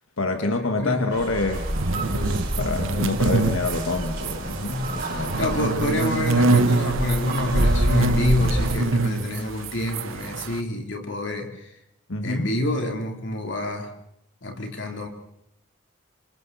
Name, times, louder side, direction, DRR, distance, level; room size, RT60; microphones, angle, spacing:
voice 1, 0.2-5.4 12.1-12.5, left 2 dB, 85° left, 5 dB, 1.6 m, -27 dB
sound 1, 1.1-8.8, equal, 45° right, 5.1 m, -28 dB
sound 2, 1.6-10.6, right 3 dB, 75° right, 1.0 m, -25 dB
voice 2, 5.1-11.7 12.2-13.9 14.4-15.1, left 1 dB, 60° left, 3 dB, 3.3 m, -27 dB
27.5 x 26.0 x 4.2 m, 0.78 s
head